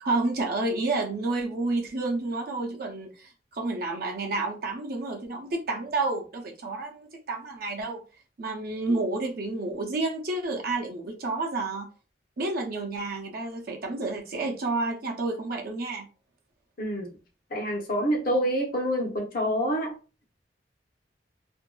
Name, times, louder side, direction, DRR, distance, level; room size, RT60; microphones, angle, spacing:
voice 1, 0.0-8.0 8.4-11.9 12.4-16.1, right 2 dB, 55° right, 0.6 m, -30 dB
voice 2, 16.8-17.1 17.5-19.9, equal, 55° left, 0.7 m, -27 dB
2.5 x 2.2 x 2.2 m
head